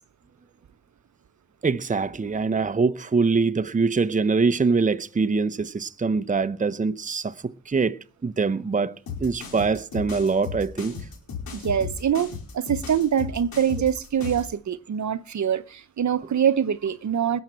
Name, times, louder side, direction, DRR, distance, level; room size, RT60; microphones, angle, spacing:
voice 1, 1.6-11.0, right 4 dB, 20° right, 0.8 m, -24 dB
sound 1, 9.1-14.5, left 6 dB, 90° left, 4.9 m, -35 dB
voice 2, 11.5-17.4, right 8 dB, 55° right, 0.9 m, -24 dB
20.0 x 8.1 x 7.6 m
wide cardioid pair, 105°, 35 cm